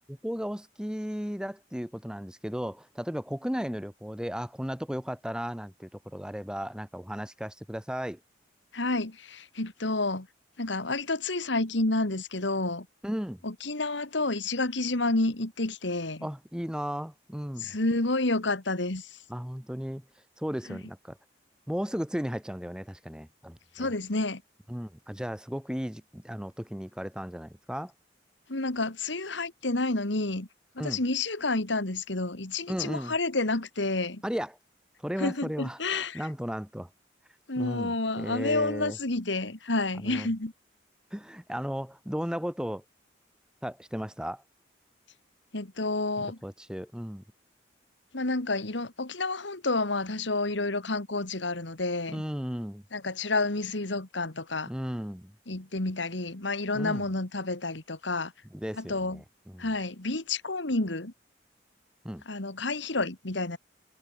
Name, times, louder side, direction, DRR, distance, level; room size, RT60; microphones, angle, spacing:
voice 1, 0.1-8.2 13.0-13.4 16.2-17.7 19.3-20.0 20.4-21.2 21.7-23.9 24.7-27.9 30.8-31.0 32.7-33.1 34.2-34.6 35.0-36.9 37.6-39.0 40.0-40.3 41.1-42.8 43.6-44.4 46.2-47.2 52.1-52.8 54.7-55.3 56.7-57.0 58.5-59.7 62.0-62.2, equal, 5° right, 1.2 m, -35 dB
voice 2, 8.7-10.3 10.6-12.9 13.4-16.3 17.6-19.1 20.7-20.8 23.8-24.4 28.5-30.5 30.8-34.2 35.2-36.3 37.5-40.5 45.5-46.4 48.1-52.2 52.9-54.7 55.5-58.3 58.8-59.2 59.6-61.1 62.3-63.6, left 2 dB, 75° left, 2.2 m, -29 dB
head